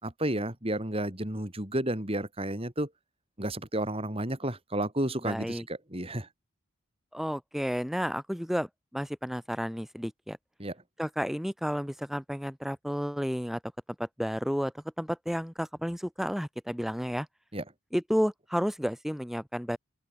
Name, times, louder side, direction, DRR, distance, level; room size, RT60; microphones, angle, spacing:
voice 1, 0.0-2.9 3.4-6.3 10.6-10.8 17.5-17.6, right 1 dB, 25° right, 3.6 m, -32 dB
voice 2, 5.2-5.6 7.1-8.7 8.9-10.4 11.0-13.6 14.0-17.3 17.9-19.8, equal, ahead, 3.9 m, -31 dB
open air
head